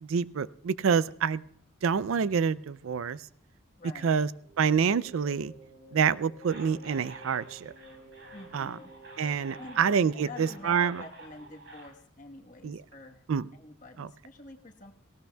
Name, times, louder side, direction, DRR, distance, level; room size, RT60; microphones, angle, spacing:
voice 1, 0.0-1.4 1.8-3.2 4.0-4.3 4.6-5.5 5.9-7.7 8.5-8.8 9.2-11.0 12.6-12.8 13.3-13.5 14.0-14.1, right 6 dB, 80° right, 18 dB, 0.4 m, -27 dB
voice 2, 3.8-4.2 8.3-8.9 9.6-9.8 10.1-13.2 13.5-14.9, left 2 dB, 40° left, 3 dB, 1.3 m, -47 dB
sound 1, 4.4-11.6, right 1 dB, 30° right, 6.1 m, -53 dB
sound 2, 6.4-11.9, right 3 dB, 60° right, 4.2 m, -49 dB
18.5 x 17.5 x 2.3 m, 0.67 s
head